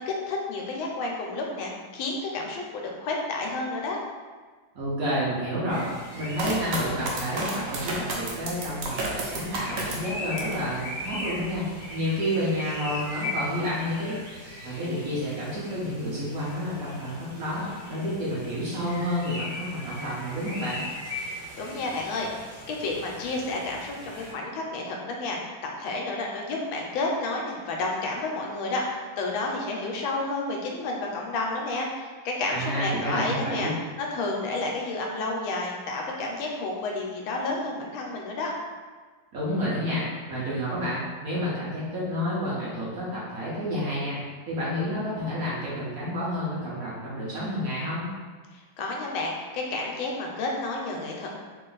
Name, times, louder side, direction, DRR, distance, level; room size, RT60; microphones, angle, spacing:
voice 1, 0.1-4.0 21.6-33.7 34.0-38.5 48.5-51.3, left 2 dB, 90° left, 0 dB, 1.5 m, -31 dB
voice 2, 4.7-5.9 6.1-14.2 14.6-20.8 32.5-33.7 39.3-44.2 44.5-48.1, equal, 60° right, -7 dB, 1.0 m, -30 dB
sound 1, 5.7-24.3, left 1 dB, 40° right, 1.4 m, -39 dB
sound 2, 6.4-10.7 11.1-11.7, right 2 dB, 80° right, 0.7 m, -32 dB
3.4 x 2.5 x 3.8 m, 1.4 s
omnidirectional pair, 2.1 m